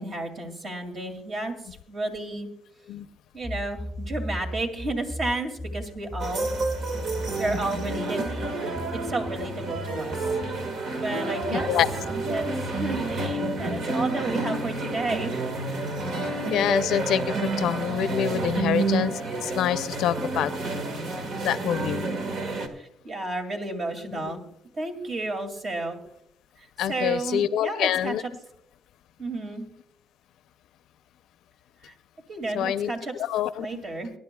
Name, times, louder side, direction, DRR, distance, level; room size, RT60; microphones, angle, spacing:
voice 1, 0.0-1.6 1.9-2.5 3.3-6.5 7.4-8.2 8.9-10.4 11.0-11.8 12.1-12.4 12.7-15.4 22.8-24.4 24.7-26.0 26.6-28.3 29.2-29.7 31.8-31.9 32.3-33.1 33.6-34.1, right 2 dB, 55° right, 4 dB, 2.4 m, -32 dB
sound 1, 3.4-10.7 11.4-13.9, left 1 dB, ahead, 0.7 m, -37 dB
sound 2, 6.2-22.7, right 3 dB, 75° right, 1.6 m, -29 dB
voice 2, 11.5-11.9 16.5-19.1 19.4-20.5 21.4-22.0 24.2-24.3 26.8-28.2 32.5-32.9 33.2-33.8, left 10 dB, 85° left, 13 dB, 0.5 m, -26 dB
23.0 x 11.0 x 2.3 m, 0.75 s
cardioid pair, 90°, 0 cm